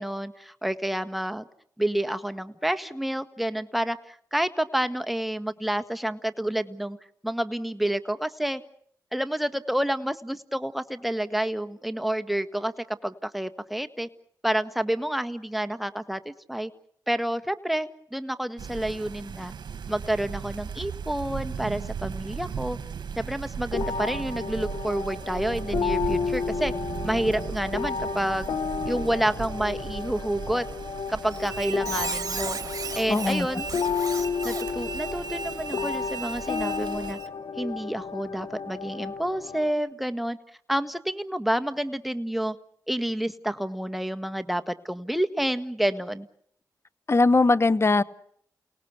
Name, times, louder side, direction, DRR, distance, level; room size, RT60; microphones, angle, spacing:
voice 1, 0.0-1.5 1.8-7.0 7.2-8.6 9.1-12.7 13.0-14.1 14.4-16.7 17.1-19.5 19.9-22.8 23.2-26.7 27.0-28.5 28.8-30.7 31.1-32.6 32.9-33.7 34.4-37.2 37.6-40.4 40.7-42.6 42.9-46.3, right 1 dB, ahead, 9 dB, 1.7 m, -29 dB
sound 1, 18.6-37.1, right 7 dB, 70° right, 1.6 m, -37 dB
sound 2, 23.7-39.7, left 5 dB, 75° left, 1.5 m, -32 dB
Squeak, 31.3-37.3, right 5 dB, 50° right, 3.0 m, -36 dB
voice 2, 33.1-33.5 47.1-48.0, left 3 dB, 35° left, 17 dB, 1.1 m, -20 dB
29.0 x 18.5 x 8.2 m, 0.68 s
supercardioid pair, 45°, 8 cm